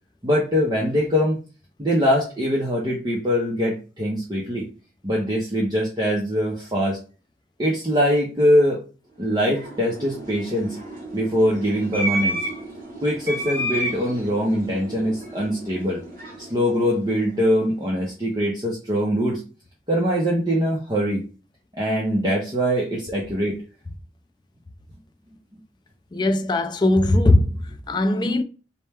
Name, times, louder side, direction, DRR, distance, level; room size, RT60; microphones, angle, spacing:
voice 1, 0.2-1.4 1.8-4.6 5.0-7.0 7.6-8.8 9.2-10.8 11.1-12.4 13.0-16.0 16.4-19.4 19.9-21.2 21.8-23.6, equal, 25° right, 0.7 m, -22 dB
sound 1, 9.2-17.7, right 1 dB, 50° right, 1.3 m, -32 dB
voice 2, 26.1-28.4, left 1 dB, 25° left, 0.3 m, -20 dB
4.3 x 2.1 x 3.4 m
head